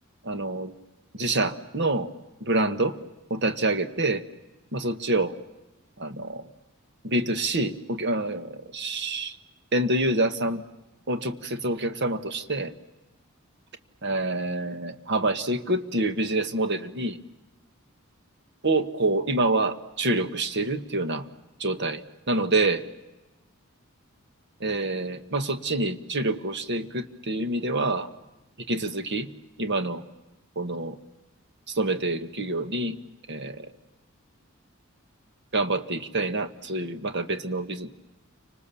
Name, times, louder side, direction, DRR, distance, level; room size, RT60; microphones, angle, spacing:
voice 1, 0.2-0.7 1.1-2.1 2.4-3.0 3.3-4.2 4.7-5.3 6.0-6.5 7.0-9.4 9.7-10.6 11.1-12.7 14.0-17.2 18.6-21.3 21.6-22.0 22.3-22.8 24.6-28.1 28.7-29.3 29.6-30.0 30.5-31.0 31.7-33.0 33.3-33.7 35.5-37.9, right 2 dB, 55° right, 9 dB, 1.6 m, -27 dB
30.0 x 26.0 x 7.1 m, 1.0 s
head